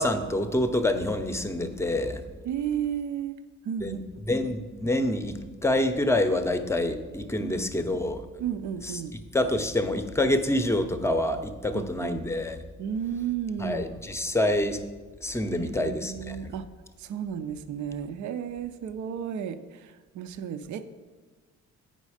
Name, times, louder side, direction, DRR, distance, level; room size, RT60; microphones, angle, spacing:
voice 1, 0.0-2.2 3.8-4.0 4.3-8.2 8.8-8.9 9.3-12.6 13.6-14.8 15.2-16.4, left 1 dB, 10° left, 8 dB, 0.6 m, -27 dB
voice 2, 2.4-3.4 3.6-4.0 7.4-7.5 8.4-9.1 11.7-12.2 12.8-13.8 15.5-16.7 17.0-20.8, right 8 dB, 70° right, 11 dB, 0.6 m, -33 dB
8.4 x 5.4 x 4.9 m, 1.3 s
cardioid pair, 90°, 30 cm